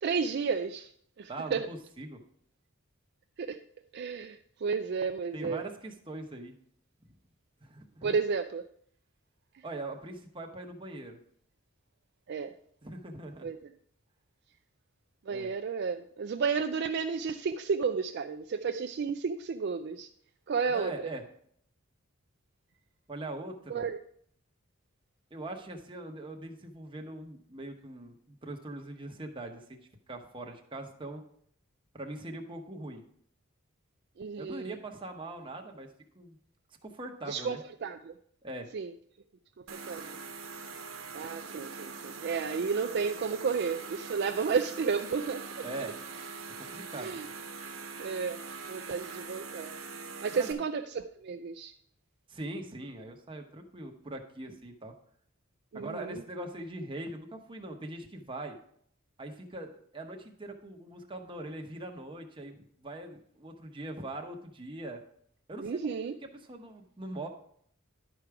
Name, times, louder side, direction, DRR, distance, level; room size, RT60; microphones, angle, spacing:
voice 1, 0.0-0.9 1.2-1.7 3.4-3.6 3.9-5.6 8.0-8.6 12.3-12.5 13.4-13.7 15.3-20.1 20.5-21.1 23.7-24.0 34.2-34.8 37.3-38.1 38.7-38.9 39.7-40.2 41.1-45.7 46.9-47.3 48.0-48.4 48.7-49.7 50.2-51.7 55.7-56.2 65.6-66.2, right 5 dB, 55° right, 7 dB, 0.4 m, -32 dB
voice 2, 1.3-2.2 5.3-6.5 7.6-8.2 9.6-11.2 12.8-13.5 15.3-15.5 20.7-21.2 23.1-23.9 25.3-29.8 30.1-31.2 31.9-33.0 34.4-35.9 36.1-36.4 36.8-37.6 38.4-38.7 45.6-46.0 46.6-47.2 50.3-50.5 52.3-54.9 55.7-58.6 59.2-65.0 65.5-66.0 66.3-67.3, right 2 dB, 25° right, 3 dB, 1.0 m, -41 dB
sound 1, 39.7-50.5, right 4 dB, 85° right, 1.0 m, -43 dB
11.5 x 4.9 x 4.7 m, 0.64 s
head